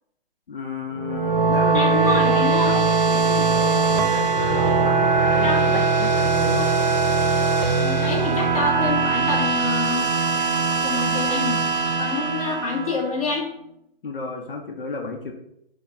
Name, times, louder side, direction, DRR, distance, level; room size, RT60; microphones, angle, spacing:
voice 1, 0.5-6.7 14.0-15.3, left 3 dB, 65° left, 3 dB, 0.9 m, -31 dB
sound 1, 0.9-13.3, right 4 dB, 45° right, 0.7 m, -21 dB
voice 2, 1.7-2.7 5.4-5.7 7.7-10.1 10.8-11.6 12.0-13.5, left 3 dB, 35° left, -1 dB, 1.2 m, -26 dB
4.4 x 2.3 x 4.5 m, 0.76 s
figure-of-eight pair, 145°, 29 cm